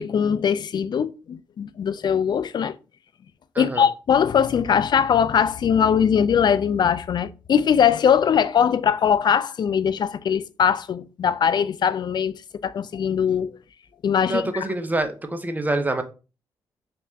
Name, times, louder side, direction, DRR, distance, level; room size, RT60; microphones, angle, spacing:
voice 1, 0.0-2.7 3.6-13.5 14.0-14.6, left 7 dB, 50° left, 0.4 m, -21 dB
voice 2, 14.2-16.0, right 2 dB, 15° right, 0.6 m, -26 dB
3.4 x 2.9 x 2.7 m
cardioid pair, 65°, 9 cm